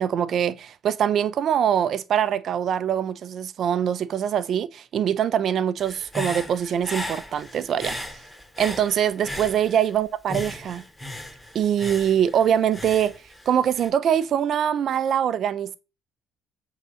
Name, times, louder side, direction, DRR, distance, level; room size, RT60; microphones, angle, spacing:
voice 1, 0.0-8.0 8.6-10.8 11.5-13.1 13.5-15.8, right 9 dB, 55° right, 0.8 m, -23 dB
Human voice / Breathing, 5.8-9.9 10.3-13.9, left 1 dB, 10° left, 3.3 m, -36 dB
8.2 x 4.1 x 5.2 m
hypercardioid pair, 60°, 0 cm